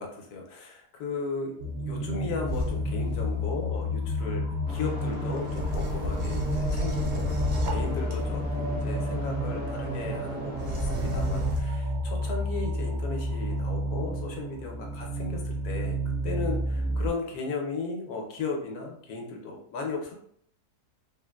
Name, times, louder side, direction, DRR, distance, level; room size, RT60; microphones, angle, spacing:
voice 1, 0.0-16.0 16.2-20.1, left 4 dB, 75° left, 1 dB, 1.2 m, -36 dB
sound 1, 1.6-17.1, equal, 60° right, 0.8 m, -31 dB
sound 2, 2.5-3.4 5.4-8.5 10.5-11.6, left 1 dB, 75° right, 1.2 m, -32 dB
sound 3, 4.7-11.5, right 1 dB, 15° left, 0.3 m, -36 dB
3.8 x 2.1 x 2.2 m, 0.65 s
omnidirectional pair, 1.7 m